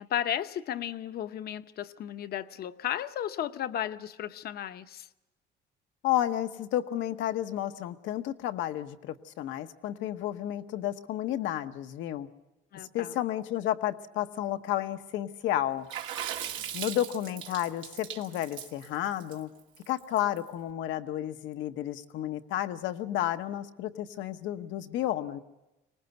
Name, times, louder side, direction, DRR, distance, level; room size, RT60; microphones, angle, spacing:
voice 1, 0.0-5.1 12.7-13.2, left 10 dB, 55° left, 0.8 m, -34 dB
voice 2, 6.0-12.3 12.9-15.9 16.7-19.5 19.9-25.4, left 12 dB, 80° left, 1.0 m, -31 dB
Water / Splash splatter, 15.9-20.4, right 10 dB, 90° right, 2.0 m, -38 dB
24.5 x 19.5 x 8.0 m
cardioid pair, 130°, 19 cm